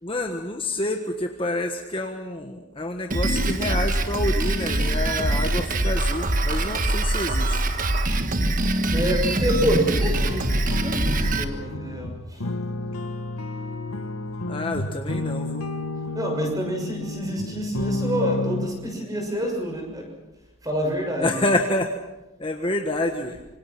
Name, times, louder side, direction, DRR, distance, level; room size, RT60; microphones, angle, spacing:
voice 1, 0.0-7.7 14.5-15.7 21.2-21.9 22.4-23.4, left 1 dB, 25° left, 4 dB, 1.3 m, -28 dB
Drum kit, 3.1-11.4, right 1 dB, 40° right, 1.4 m, -23 dB
voice 2, 8.9-12.4 16.1-20.1 20.6-21.5, equal, 15° right, 2 dB, 6.3 m, -27 dB
sound 1, 10.0-18.7, left 2 dB, 90° left, 1.7 m, -31 dB
26.0 x 25.5 x 6.1 m, 1.0 s
head